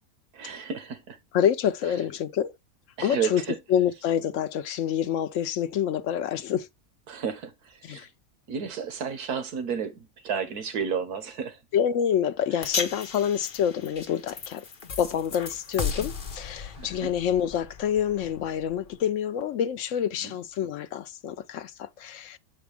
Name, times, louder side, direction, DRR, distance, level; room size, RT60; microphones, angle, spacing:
voice 1, 0.3-1.2 3.0-3.6 7.1-8.1 8.5-9.9 10.2-11.6 16.8-17.1 20.2-20.3, right 7 dB, 80° right, 1.5 m, -32 dB
voice 2, 1.3-2.5 3.0-3.4 3.7-6.7 7.8-8.1 11.7-14.6 15.0-22.4, left 9 dB, 65° left, 0.9 m, -27 dB
sound 1, 12.6-19.0, left 5 dB, 40° left, 1.1 m, -36 dB
7.2 x 4.4 x 3.4 m
omnidirectional pair, 1.6 m